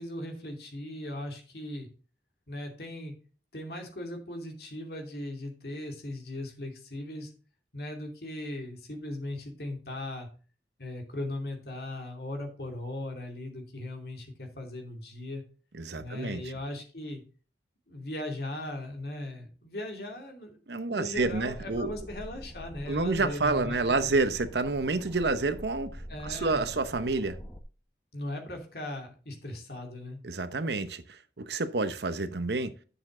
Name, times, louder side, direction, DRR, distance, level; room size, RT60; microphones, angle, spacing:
voice 1, 0.0-1.9 2.5-3.1 3.5-7.3 7.7-10.3 10.8-15.4 16.0-17.2 17.9-20.5 20.9-24.1 26.1-26.7 28.1-30.2, left 1 dB, 60° left, 2.7 m, -38 dB
voice 2, 15.8-16.4 20.7-21.9 22.9-26.0 26.2-27.4 30.2-32.7, right 3 dB, 75° right, 0.9 m, -29 dB
sound 1, 21.1-27.6, equal, 10° left, 1.0 m, -44 dB
9.9 x 7.1 x 3.8 m
head